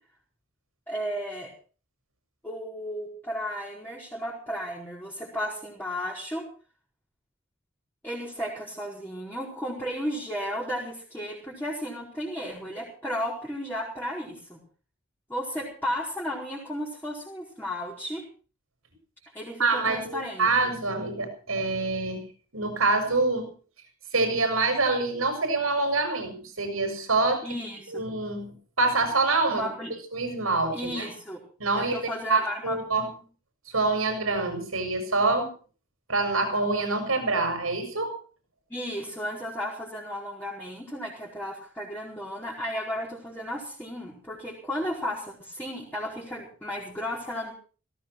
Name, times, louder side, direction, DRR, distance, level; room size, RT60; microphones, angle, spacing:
voice 1, 0.9-1.5 2.4-6.4 8.0-14.6 15.3-18.2 19.3-20.5 27.4-28.1 29.5-29.9 30.7-31.4 31.8-32.8 38.7-47.5, equal, 10° left, -5 dB, 4.7 m, -34 dB
voice 2, 19.6-22.2 22.5-23.5 24.1-27.5 27.9-29.6 30.1-31.1 31.6-33.1 33.7-35.5 36.1-38.2, right 3 dB, 90° right, 6 dB, 7.2 m, -26 dB
18.0 x 16.0 x 4.7 m, 0.40 s
head